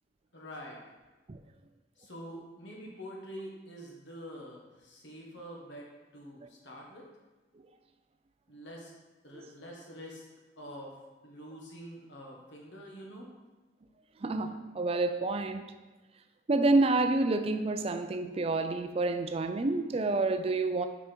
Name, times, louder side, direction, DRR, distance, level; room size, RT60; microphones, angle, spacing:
voice 1, 0.3-0.8 2.0-5.9 6.1-7.0 8.5-8.9 9.2-10.3 10.6-11.0 11.2-13.3, equal, 65° left, 1.5 m, -46 dB
voice 2, 14.2-15.6 16.5-20.9, right 2 dB, 30° right, 0.4 m, -28 dB
5.8 x 4.9 x 4.5 m
head